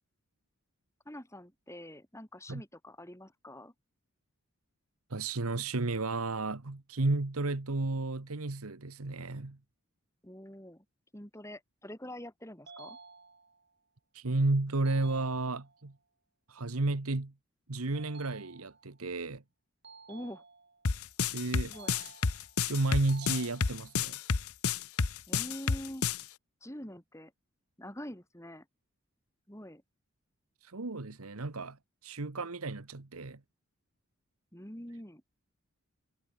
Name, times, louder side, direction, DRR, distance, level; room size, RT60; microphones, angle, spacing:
voice 1, 1.0-3.7 10.2-10.8 11.1-13.0 20.1-20.4 21.7-21.9 25.3-26.0 26.6-27.3 27.8-28.7 29.5-29.8 34.5-35.2, equal, 15° left, 4.5 m, -45 dB
voice 2, 5.1-9.6 14.1-15.9 16.5-17.3 17.7-19.4 21.3-22.1 22.7-24.2 30.6-31.8 32.0-33.4, right 2 dB, 80° right, 1.3 m, -32 dB
sound 1, 12.7-13.7 14.8-15.8 17.9-19.0 19.8-20.9 21.7-22.6 23.1-24.1, right 4 dB, 50° right, 7.3 m, -52 dB
sound 2, 20.8-26.2, left 5 dB, 85° left, 1.0 m, -30 dB
head